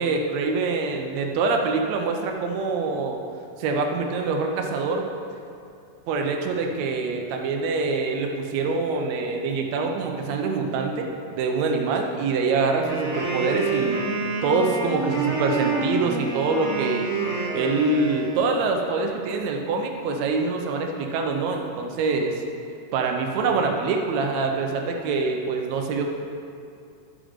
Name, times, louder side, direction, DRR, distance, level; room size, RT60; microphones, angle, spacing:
voice 1, 0.0-3.2 3.6-5.0 6.1-11.1 11.3-14.0 14.4-17.1 17.5-22.3 22.9-26.0, right 4 dB, 70° right, 2 dB, 1.8 m, -25 dB
Wind instrument woodwind instrument, 12.7-18.6, right 3 dB, 40° right, 0.9 m, -28 dB
11.5 x 5.0 x 5.0 m, 2.5 s
omnidirectional pair, 3.8 m